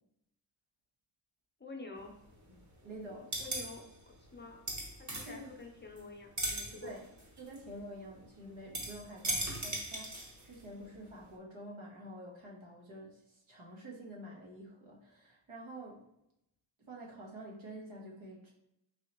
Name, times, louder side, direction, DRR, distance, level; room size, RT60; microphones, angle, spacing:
voice 1, 1.6-2.1 3.0-3.1 3.4-3.8 4.3-4.6 5.0-7.0, left 3 dB, 20° left, 1 dB, 0.7 m, -48 dB
sound 1, 2.0-2.7 3.0-6.0 6.3-10.8 11.2-11.3, right 1 dB, 35° right, 1.1 m, -39 dB
voice 2, 2.5-3.5 5.2-5.5 6.6-7.1 7.4-16.1 16.9-18.5, right 1 dB, 70° right, -2 dB, 1.2 m, -48 dB
3.7 x 2.8 x 3.0 m, 0.82 s
cardioid pair, 50°, 48 cm